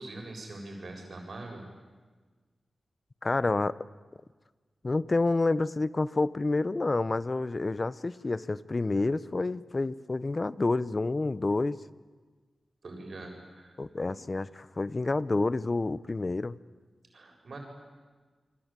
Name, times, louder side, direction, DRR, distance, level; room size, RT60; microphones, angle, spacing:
voice 1, 0.0-1.6 12.8-14.1 17.1-17.6, right 2 dB, 65° right, 2 dB, 7.7 m, -43 dB
voice 2, 3.2-3.7 4.8-11.8 13.8-16.6, left 3 dB, 40° left, 17 dB, 0.9 m, -28 dB
27.0 x 23.5 x 9.1 m, 1.4 s
cardioid pair, 55°, 0 cm